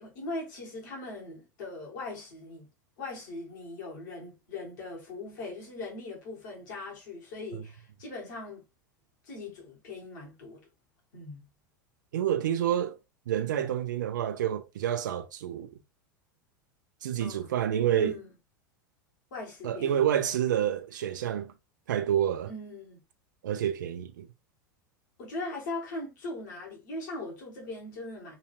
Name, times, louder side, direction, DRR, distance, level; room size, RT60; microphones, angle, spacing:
voice 1, 0.0-2.7 3.0-8.6 9.2-10.6 11.1-11.5 17.2-17.5 18.0-18.3 19.3-20.1 22.5-23.0 25.2-28.3, left 2 dB, 60° left, 1.6 m, -40 dB
voice 2, 12.1-13.0 13.3-15.7 17.0-18.1 19.6-21.5 21.9-22.5 23.4-24.3, right 10 dB, 65° right, 0.6 m, -28 dB
3.8 x 2.8 x 2.7 m
figure-of-eight pair, 85°, 11 cm